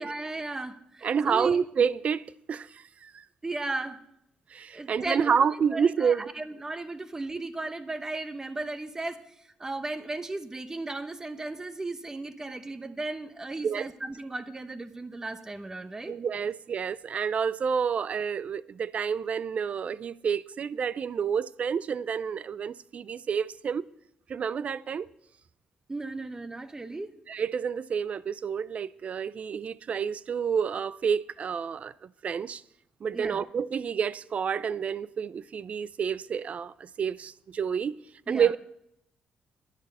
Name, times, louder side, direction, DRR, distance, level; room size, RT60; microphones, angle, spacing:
voice 1, 0.0-1.6 3.4-4.0 4.7-16.2 25.9-27.1 33.1-33.4 38.3-38.5, right 2 dB, 20° right, 0.9 m, -36 dB
voice 2, 1.0-3.2 4.5-6.2 13.6-13.9 16.1-23.9 24.3-25.1 27.3-32.6 33.0-38.0 38.3-38.6, right 7 dB, 45° right, 0.4 m, -29 dB
10.5 x 10.5 x 5.5 m
cardioid pair, 105°, 3 cm